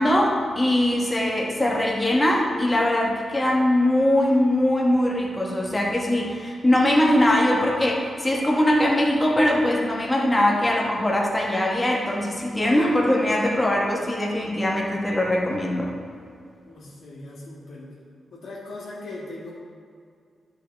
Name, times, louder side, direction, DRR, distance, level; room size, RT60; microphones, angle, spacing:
voice 1, 0.0-15.9, left 1 dB, 10° left, -2 dB, 1.1 m, -21 dB
voice 2, 16.7-17.9 18.3-19.6, left 2 dB, 90° left, -10 dB, 2.0 m, -39 dB
12.0 x 5.6 x 3.4 m, 2.2 s
wide cardioid pair, 165°, 0 cm